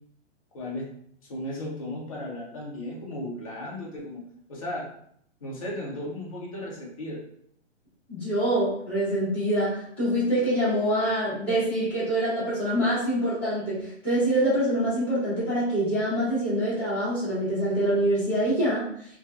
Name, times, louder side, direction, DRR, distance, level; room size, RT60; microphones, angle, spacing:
voice 1, 0.5-0.9 1.2-4.9 5.4-7.2, left 1 dB, 30° left, -4 dB, 0.5 m, -35 dB
voice 2, 8.1-18.9, right 1 dB, 5° left, -15 dB, 0.9 m, -25 dB
2.6 x 2.3 x 2.3 m, 0.66 s
hypercardioid pair, 170°, 37 cm